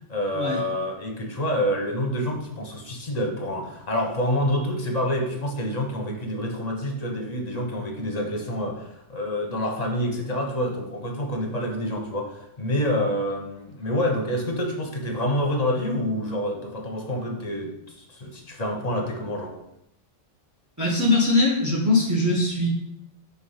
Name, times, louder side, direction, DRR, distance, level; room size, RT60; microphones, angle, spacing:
voice 1, 0.1-19.6, equal, 35° left, 1 dB, 1.1 m, -27 dB
voice 2, 20.8-22.7, left 2 dB, 15° right, -3 dB, 1.2 m, -21 dB
4.7 x 3.9 x 5.6 m, 0.81 s
omnidirectional pair, 1.3 m